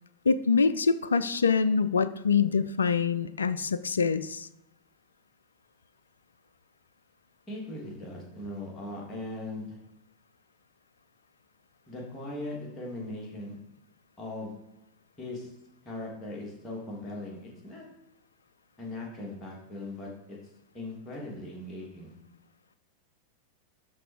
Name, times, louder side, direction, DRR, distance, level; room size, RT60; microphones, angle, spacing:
voice 1, 0.3-4.5, left 5 dB, 70° left, 13 dB, 0.4 m, -25 dB
voice 2, 7.5-9.8 11.9-13.6 14.2-14.5 15.2-15.5 15.8-17.8 18.8-20.1 20.7-22.1, left 2 dB, 15° left, -3 dB, 3.0 m, -39 dB
13.0 x 4.4 x 4.7 m, 0.91 s
figure-of-eight pair, 90°, 0 cm